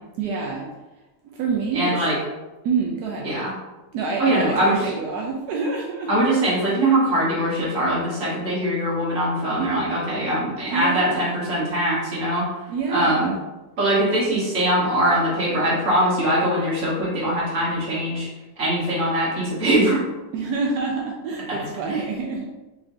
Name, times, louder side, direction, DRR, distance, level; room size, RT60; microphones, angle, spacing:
voice 1, 0.2-0.7 1.3-2.0 2.6-3.3 3.9-6.1 10.7-11.5 12.7-13.4 20.3-22.5, right 4 dB, 85° right, -1 dB, 1.2 m, -27 dB
voice 2, 1.7-2.2 3.2-3.5 4.2-4.9 6.1-12.5 12.9-13.3 13.8-18.3 18.6-20.0 21.9-22.0, right 1 dB, 55° right, -7 dB, 1.9 m, -22 dB
4.9 x 3.6 x 2.7 m, 1.1 s
omnidirectional pair, 1.7 m